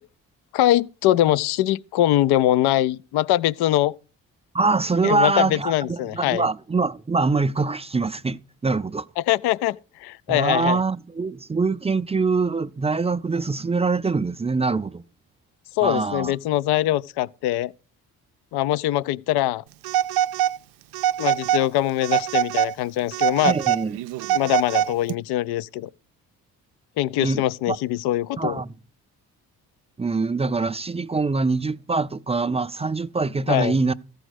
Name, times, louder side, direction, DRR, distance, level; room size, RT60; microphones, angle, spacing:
voice 1, 0.5-4.0 5.0-6.5 9.2-10.8 15.8-17.7 18.5-19.6 21.2-23.6 24.3-25.9 27.0-28.6 33.5-33.7, left 14 dB, 70° left, 0.5 m, -22 dB
voice 2, 4.5-9.1 10.3-15.0 15.8-16.3 23.4-24.0 27.2-27.8 28.4-28.7 30.0-33.9, right 3 dB, 15° right, 0.4 m, -24 dB
Telephone, 19.8-20.6 20.9-21.7 22.0-22.7 23.1-25.1, right 11 dB, 70° right, 0.5 m, -23 dB
14.0 x 5.0 x 6.3 m
supercardioid pair, 55°, 40 cm